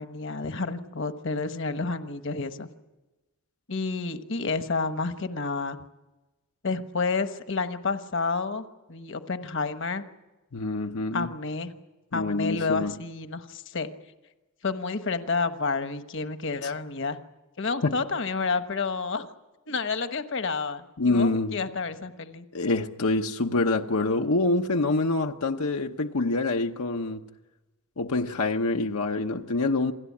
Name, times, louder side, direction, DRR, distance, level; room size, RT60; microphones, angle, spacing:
voice 1, 0.0-2.7 3.7-5.8 6.6-10.0 11.1-11.7 12.1-13.9 14.6-17.2 17.6-19.3 19.7-22.4, left 4 dB, 60° left, 1.2 m, -30 dB
voice 2, 10.5-11.3 12.1-13.0 16.6-16.7 17.8-17.9 21.0-21.6 22.5-27.2 28.0-29.9, left 2 dB, 85° left, 1.0 m, -26 dB
28.0 x 18.0 x 8.5 m
head